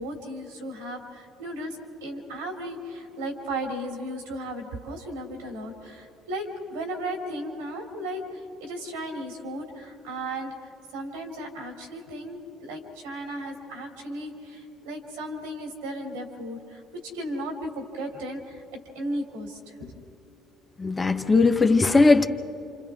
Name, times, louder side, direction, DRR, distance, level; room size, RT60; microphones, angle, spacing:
voice 1, 0.0-10.6 10.9-16.8 17.1-18.6 18.9-20.0, right 1 dB, 75° right, 2 dB, 3.1 m, -35 dB
voice 2, 20.8-22.3, left 3 dB, 25° left, 6 dB, 1.3 m, -19 dB
30.0 x 27.5 x 3.7 m, 2.8 s
hypercardioid pair, 55°, 0 cm